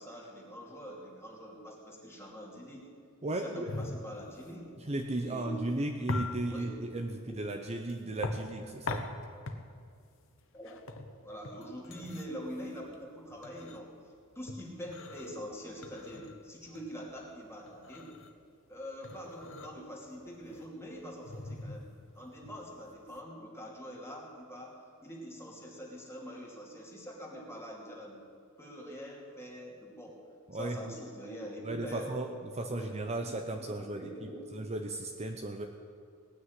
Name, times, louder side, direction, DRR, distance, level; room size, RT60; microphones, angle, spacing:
voice 1, 0.0-2.9 3.3-4.7 5.2-5.6 6.5-6.7 7.3-7.4 10.5-10.8 11.2-13.9 14.3-18.1 18.7-21.9 22.1-28.2 28.6-30.2 30.5-32.1 32.7-33.4 33.8-34.4, equal, 10° left, -2 dB, 2.7 m, -44 dB
voice 2, 3.2-3.7 4.8-9.1 30.5-31.0 31.6-35.7, right 2 dB, 30° right, 4 dB, 0.7 m, -36 dB
sound 1, 3.7-23.2, left 2 dB, 65° left, 1.1 m, -42 dB
18.5 x 6.3 x 9.4 m, 2.2 s
head